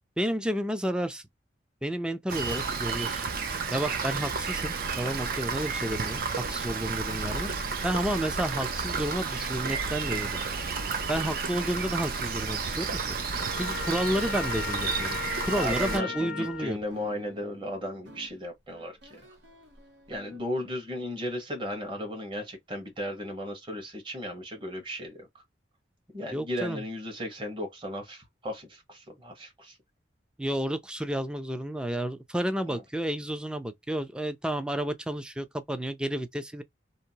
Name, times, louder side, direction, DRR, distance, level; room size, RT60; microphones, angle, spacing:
voice 1, 0.2-1.2 1.8-3.3 3.7-7.5 7.8-10.4 11.1-13.2 13.6-15.2 15.5-16.8 26.3-26.8 30.4-36.6, right 1 dB, 5° right, 0.4 m, -31 dB
Rain, 2.3-16.0, right 4 dB, 55° right, 0.5 m, -31 dB
sound 1, 13.3-20.4, right 2 dB, 90° right, 1.1 m, -52 dB
Trumpet, 13.4-16.7, left 6 dB, 60° left, 0.5 m, -36 dB
voice 2, 15.5-19.2 20.1-25.4 26.1-29.8 32.7-32.8, left 1 dB, 30° right, 1.1 m, -35 dB
2.8 x 2.0 x 2.7 m
head